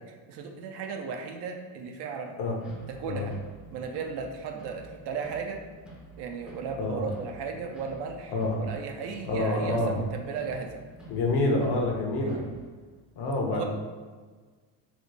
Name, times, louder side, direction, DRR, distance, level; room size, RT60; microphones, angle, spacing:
voice 1, 0.1-2.3 2.9-3.3 3.7-5.6 6.2-10.8 12.2-12.5 13.5-13.6, right 5 dB, 55° right, 4 dB, 0.5 m, -35 dB
sound 1, 2.6-12.7, right 2 dB, ahead, 0.5 m, -50 dB
voice 2, 9.2-10.0 11.1-12.4 13.2-13.6, left 2 dB, 55° left, 0 dB, 0.8 m, -27 dB
4.0 x 2.0 x 3.3 m, 1.4 s
cardioid pair, 115°, 50 cm